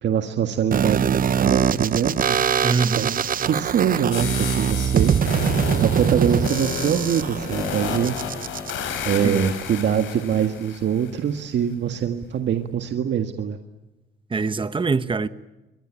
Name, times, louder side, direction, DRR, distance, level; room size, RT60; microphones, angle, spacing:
voice 1, 0.0-2.4 2.9-5.1 5.8-8.2 9.0-13.6, right 8 dB, 65° right, 1.8 m, -23 dB
sound 1, 0.7-8.7, right 8 dB, 45° right, 0.9 m, -23 dB
voice 2, 2.6-3.1 9.2-9.5 14.3-15.3, right 4 dB, 25° right, 1.2 m, -23 dB
sound 2, 4.1-11.1, left 6 dB, 75° left, 5.7 m, -31 dB
27.0 x 22.5 x 8.9 m
cardioid pair, 90°, 20 cm